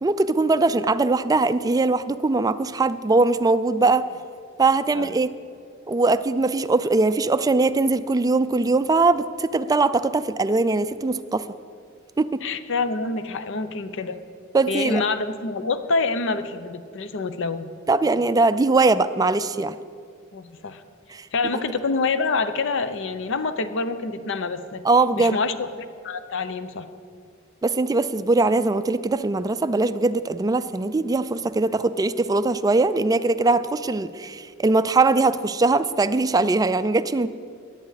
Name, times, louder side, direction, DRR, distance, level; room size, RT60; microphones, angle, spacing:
voice 1, 0.0-4.0 4.6-5.3 5.9-11.5 12.2-12.4 14.5-15.0 17.9-19.7 21.1-21.3 24.8-25.4 27.6-37.3, right 3 dB, 20° right, 13 dB, 0.3 m, -21 dB
voice 2, 12.4-14.2 14.7-17.7 20.3-20.8 21.3-24.8 25.2-25.7 26.0-26.9, left 4 dB, 65° left, 11 dB, 0.7 m, -26 dB
17.5 x 10.5 x 4.1 m, 2.3 s
head